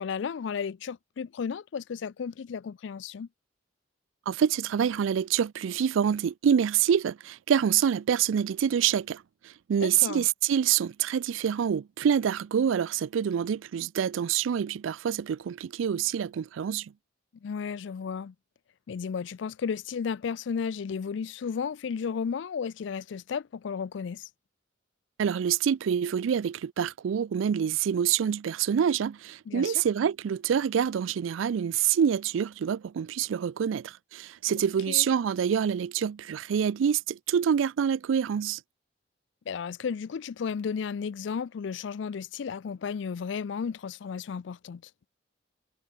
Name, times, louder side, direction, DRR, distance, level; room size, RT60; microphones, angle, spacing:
voice 1, 0.0-3.3 9.8-10.2 17.4-18.3 18.9-24.3 29.5-29.7 34.9-35.1 39.5-44.8, left 6 dB, 70° left, 0.4 m, -33 dB
voice 2, 4.3-16.9 25.2-38.6, right 8 dB, 85° right, 0.3 m, -26 dB
head